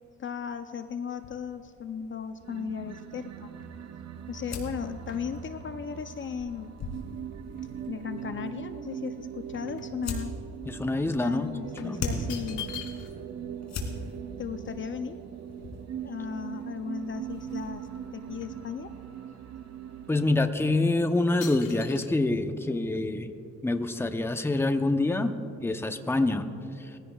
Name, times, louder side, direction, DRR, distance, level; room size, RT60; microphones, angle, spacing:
voice 1, 0.2-3.5 4.3-6.7 7.9-10.3 11.1-12.7 14.4-15.2 16.0-18.9, left 7 dB, 40° left, 9 dB, 0.6 m, -36 dB
sound 1, 1.2-18.0, left 2 dB, 65° left, 2.8 m, -42 dB
sound 2, 2.4-21.0, right 9 dB, 60° right, 0.8 m, -41 dB
sound 3, 3.0-7.9 8.4-10.6 10.9-11.0 11.8-13.3 13.6-13.7 13.9-16.1 16.6-16.7 17.0-17.8 18.0-19.3 19.8-20.0 20.6-20.9 21.4-22.1, left 8 dB, 90° left, 1.4 m, -47 dB
voice 2, 10.7-11.5 11.8-12.0 20.1-23.3 23.6-26.9, left 2 dB, 10° left, 8 dB, 0.7 m, -26 dB
21.5 x 16.0 x 2.4 m, 2.7 s
cardioid pair, 90°, 30 cm